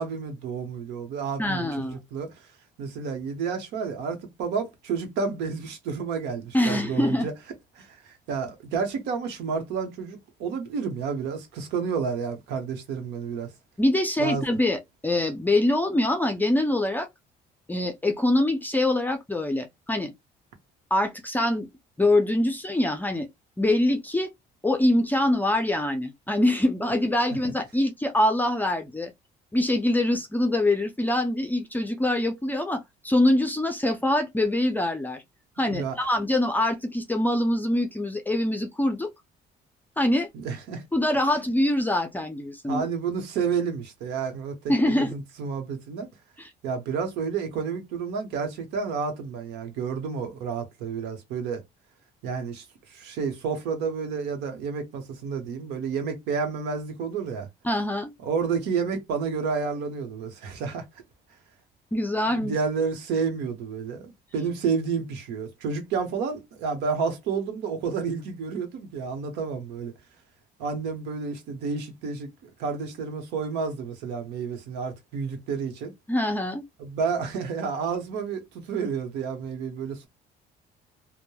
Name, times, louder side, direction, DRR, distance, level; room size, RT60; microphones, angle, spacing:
voice 1, 0.0-2.3 2.8-7.3 7.7-13.5 14.2-14.5 35.7-36.0 40.3-40.8 42.7-46.1 46.6-51.6 52.2-52.6 52.9-57.5 58.2-60.8 62.3-69.9 70.6-75.9 76.8-80.1, right 5 dB, 85° right, 0.9 m, -30 dB
voice 2, 1.4-1.9 6.5-7.3 13.8-17.1 17.7-20.1 20.9-21.7 22.0-23.3 23.6-24.3 24.6-29.1 29.5-35.2 35.6-39.1 40.0-40.3 40.9-42.8 44.7-45.1 46.4-46.5 57.6-58.1 61.9-62.6 76.1-76.6, left 1 dB, 10° left, 0.4 m, -24 dB
2.9 x 2.1 x 2.2 m
cardioid pair, 110°, 17 cm